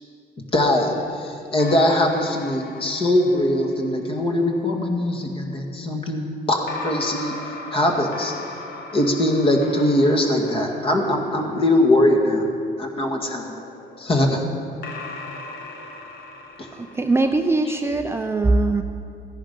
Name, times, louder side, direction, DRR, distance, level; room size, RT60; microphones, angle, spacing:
voice 1, 0.5-7.3 7.7-8.3 8.9-12.4 12.8-13.4 14.0-14.4 16.6-16.7, left 1 dB, 30° left, 2 dB, 1.9 m, -21 dB
sound 1, 0.7-4.2 6.7-12.1 13.2-17.9, left 3 dB, 60° left, 1.4 m, -39 dB
voice 2, 16.7-18.8, right 2 dB, 15° right, 5 dB, 0.5 m, -21 dB
15.0 x 10.5 x 5.4 m, 2.5 s
cardioid pair, 110°, 17 cm